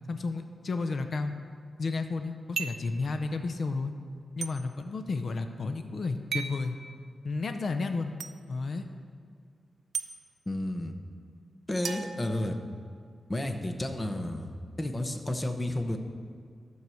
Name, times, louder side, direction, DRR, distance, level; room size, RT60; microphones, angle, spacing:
voice 1, 0.1-1.3 1.8-3.9 4.4-6.8 7.2-8.1 8.5-8.9, left 3 dB, 50° left, 7 dB, 0.6 m, -32 dB
sound 1, 2.6-2.9 4.4-4.5 6.3-6.6 8.2-8.3 9.9-10.1 11.8-12.9, right 6 dB, 80° right, 0.5 m, -35 dB
voice 2, 10.5-10.9 11.7-12.5 13.3-16.0, left 1 dB, 20° left, 5 dB, 0.8 m, -32 dB
12.0 x 4.7 x 6.9 m, 2.1 s
wide cardioid pair, 130°, 0 cm